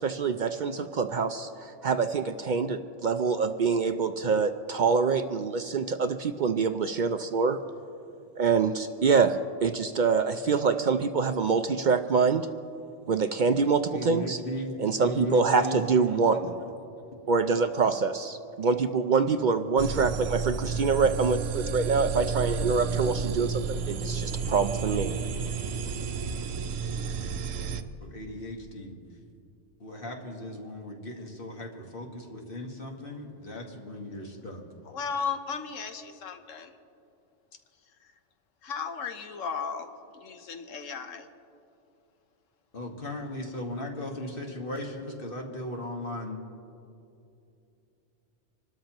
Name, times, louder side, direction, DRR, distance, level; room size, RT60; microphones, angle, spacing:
voice 1, 0.0-7.6 8.4-12.5 13.1-14.4 14.8-16.5 17.3-25.1, right 5 dB, 60° right, 8 dB, 0.5 m, -25 dB
voice 2, 13.9-14.7 15.0-15.8 16.3-16.4 28.0-29.0 29.8-34.6 42.7-46.4, left 1 dB, 45° left, 1 dB, 1.7 m, -37 dB
sound 1, 19.8-27.8, right 5 dB, 90° right, 1.1 m, -31 dB
voice 3, 34.8-36.8 38.0-38.1 38.6-41.3, left 6 dB, 85° left, 7 dB, 1.3 m, -35 dB
26.5 x 13.0 x 3.0 m, 2.7 s
omnidirectional pair, 1.3 m